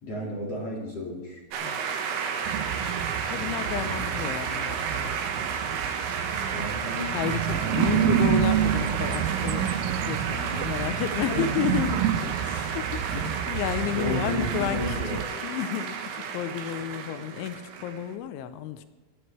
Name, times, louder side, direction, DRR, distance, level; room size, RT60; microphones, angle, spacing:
voice 1, 0.0-1.4 6.5-7.2 7.5-8.1 10.8-11.0 11.3-11.5 12.2-12.3 13.1-13.3 13.9-15.4, left 1 dB, 45° left, -3 dB, 2.2 m, -33 dB
sound 1, 1.5-18.2, right 6 dB, 70° right, 3.4 m, -32 dB
sound 2, 2.5-15.2, right 10 dB, 90° right, 3.4 m, -29 dB
voice 2, 3.3-5.2 6.6-6.8 7.1-13.2 13.5-18.9, left 10 dB, 85° left, 11 dB, 3.0 m, -32 dB
19.5 x 12.5 x 3.3 m, 1.2 s
omnidirectional pair, 5.8 m